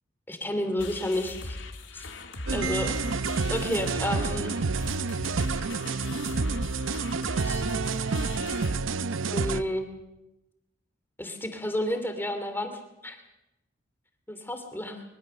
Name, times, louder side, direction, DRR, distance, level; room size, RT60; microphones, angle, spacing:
voice 1, 0.3-1.6 1.9-2.1 2.5-2.9 3.5-4.6 7.4-7.6 9.3-9.9 11.2-12.7 13.0-13.2 14.3-15.0, left 1 dB, 10° left, 6 dB, 2.6 m, -31 dB
sound 1, 0.8-8.7, left 2 dB, 70° left, 2.3 m, -39 dB
sound 2, 2.5-9.6, right 4 dB, 85° right, 0.8 m, -29 dB
23.5 x 22.5 x 6.7 m, 0.95 s
head